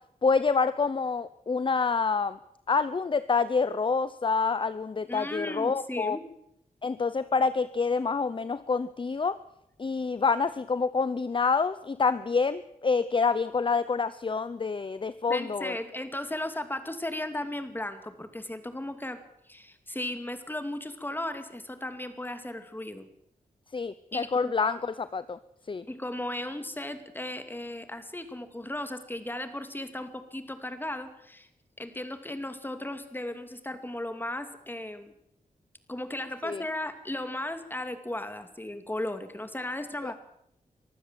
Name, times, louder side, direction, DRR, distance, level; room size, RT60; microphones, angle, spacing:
voice 1, 0.2-2.4 2.7-6.2 6.8-9.4 9.8-15.7 23.7-25.4 25.7-25.8 36.4-36.6, left 4 dB, 35° left, 14 dB, 0.7 m, -27 dB
voice 2, 5.1-6.2 15.3-19.2 19.5-23.1 24.1-24.8 25.9-31.5 31.8-35.1 35.9-40.1, left 1 dB, 15° left, 8 dB, 2.6 m, -36 dB
24.0 x 15.0 x 7.6 m, 0.75 s
wide cardioid pair, 100°, 15 cm